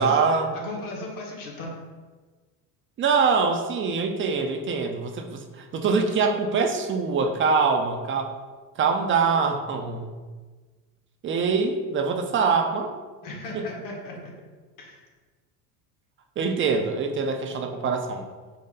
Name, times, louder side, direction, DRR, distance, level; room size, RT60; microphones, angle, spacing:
voice 1, 0.0-0.5 3.0-8.3 8.8-10.1 11.2-12.9 13.5-13.6 16.4-18.3, right 5 dB, 30° right, 5 dB, 0.5 m, -24 dB
voice 2, 0.6-1.7 13.2-14.3 14.8-15.0, left 2 dB, 50° left, -2 dB, 1.5 m, -36 dB
4.2 x 2.7 x 3.9 m, 1.4 s
supercardioid pair, 95°, 43 cm